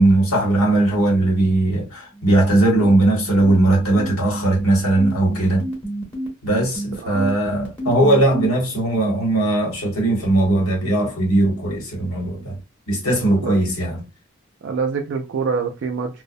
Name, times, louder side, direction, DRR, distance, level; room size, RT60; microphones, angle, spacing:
voice 1, 0.0-5.7 6.4-12.6 12.9-14.0, right 2 dB, 80° left, 1.2 m, -18 dB
sound 1, 2.1-8.5, right 1 dB, 5° left, 0.9 m, -29 dB
voice 2, 13.2-13.6 14.6-16.2, right 5 dB, 55° right, 0.3 m, -26 dB
2.4 x 2.0 x 2.6 m
head